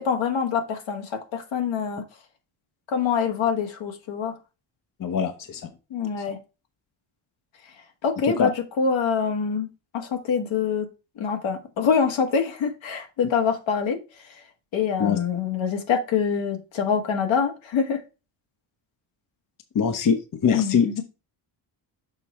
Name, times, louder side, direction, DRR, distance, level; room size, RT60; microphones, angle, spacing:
voice 1, 0.0-2.0 2.9-4.3 5.9-6.4 8.0-8.5 8.8-9.7 9.9-10.9 11.2-14.0 14.7-18.0 20.5-21.0, left 6 dB, 80° left, 4 dB, 1.7 m, -25 dB
voice 2, 5.0-5.7 8.2-8.5 15.0-15.2 19.7-20.9, left 6 dB, 45° left, 7 dB, 0.9 m, -23 dB
6.8 x 4.6 x 4.2 m, 0.30 s
cardioid pair, 115°, 46 cm